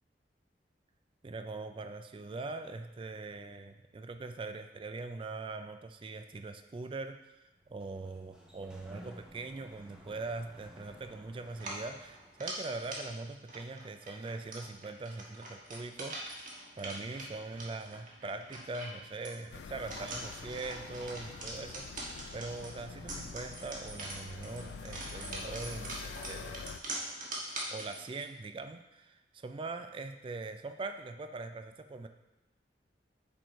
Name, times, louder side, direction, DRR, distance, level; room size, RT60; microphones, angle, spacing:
voice 1, 1.2-7.4 7.7-16.5 16.8-22.1 22.3-26.6 27.7-32.1, right 3 dB, 30° right, 8 dB, 0.3 m, -42 dB
Sliding door, 7.5-12.7, equal, 5° right, 0.8 m, -55 dB
sound 1, 11.5-28.3, right 1 dB, 50° right, 1.4 m, -44 dB
sound 2, 19.5-26.8, left 6 dB, 75° left, 0.3 m, -47 dB
6.9 x 4.5 x 4.4 m, 1.1 s
head